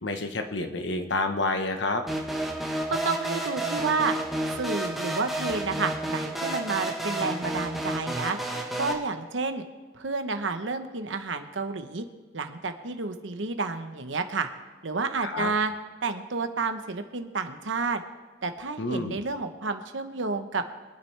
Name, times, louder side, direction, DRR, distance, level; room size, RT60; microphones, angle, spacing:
voice 1, 0.0-2.0 15.2-15.5 18.8-19.2, left 2 dB, 70° left, 6 dB, 1.2 m, -29 dB
Cosmic Clip, 2.1-8.9, right 1 dB, ahead, 1.4 m, -31 dB
voice 2, 3.0-4.2 4.6-8.4 8.8-9.6 9.9-12.0 12.3-14.5 14.8-15.7 16.0-18.0 18.4-20.6, right 4 dB, 80° right, 7 dB, 1.0 m, -30 dB
25.0 x 9.4 x 3.4 m, 1.4 s
head